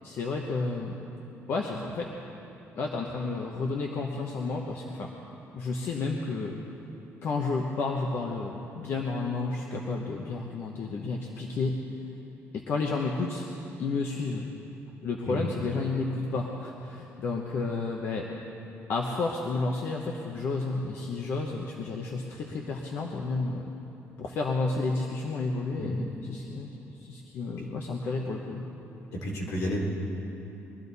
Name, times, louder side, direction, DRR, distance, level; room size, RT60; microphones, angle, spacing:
voice 1, 0.0-1.1 1.5-2.1 2.8-5.1 5.5-6.6 7.2-11.7 12.5-13.5 13.8-14.5 15.0-18.3 18.9-23.7 24.2-26.7 27.0-28.7, left 3 dB, 50° left, 0 dB, 1.0 m, -31 dB
voice 2, 29.1-29.9, equal, 75° left, -3 dB, 3.2 m, -31 dB
22.0 x 13.0 x 4.1 m, 3.0 s
cardioid pair, 165°, 5 cm